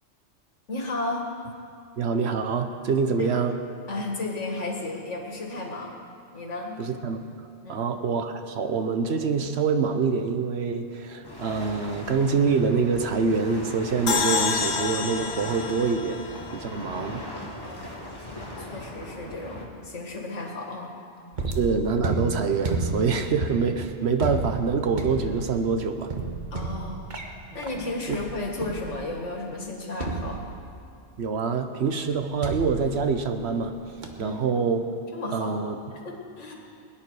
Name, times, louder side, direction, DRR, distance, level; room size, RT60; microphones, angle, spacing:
voice 1, 0.7-1.3 3.2-3.3 3.9-6.0 6.3-6.8 7.6-7.8 16.9-21.0 21.4-21.6 26.5-27.1 27.5-30.4 34.2-34.4 35.1-35.5 35.9-36.5, left 2 dB, 85° left, 0 dB, 2.2 m, -34 dB
voice 2, 2.0-3.6 6.8-17.2 21.6-26.1 28.1-28.2 31.2-33.7 34.2-34.8 35.3-35.8, right 5 dB, 65° right, 7 dB, 1.1 m, -25 dB
sound 1, 11.2-19.7, left 1 dB, 20° left, 1.6 m, -40 dB
sound 2, 14.1-17.4, left 5 dB, 70° left, 1.2 m, -29 dB
sound 3, 21.3-29.3 30.0-31.0 32.4-33.7 34.0-34.4, right 3 dB, 45° right, 1.3 m, -33 dB
21.5 x 10.0 x 4.8 m, 2.6 s
omnidirectional pair, 1.2 m